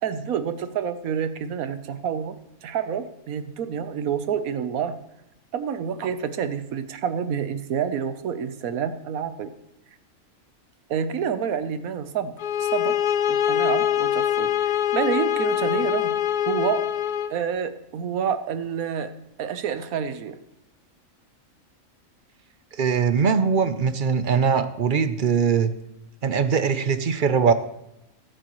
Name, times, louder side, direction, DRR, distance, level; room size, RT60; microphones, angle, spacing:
voice 1, 0.0-2.4 2.6-5.0 5.5-9.5 10.9-13.0 13.3-16.1 16.5-16.9 17.3-19.1 19.4-20.4, right 7 dB, 85° right, 11 dB, 1.3 m, -28 dB
sound 1, 12.4-17.4, left 10 dB, 80° left, 0.4 m, -24 dB
voice 2, 22.8-25.7 26.2-27.5, right 6 dB, 50° right, 11 dB, 0.6 m, -21 dB
15.5 x 12.5 x 3.0 m, 0.85 s
omnidirectional pair, 1.4 m